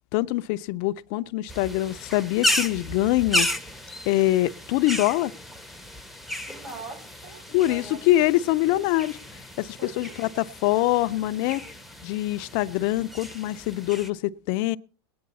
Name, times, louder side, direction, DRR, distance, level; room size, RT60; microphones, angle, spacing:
voice 1, 0.1-3.5 4.1-5.3 7.5-11.6 12.0-14.8, left 16 dB, 55° left, 0.6 m, -24 dB
sound 1, 1.5-14.1, left 1 dB, ahead, 0.9 m, -33 dB
voice 2, 6.4-8.0 8.7-8.9 9.8-10.2, right 3 dB, 65° right, 6.9 m, -43 dB
20.0 x 9.6 x 4.1 m
supercardioid pair, 115°, 14 cm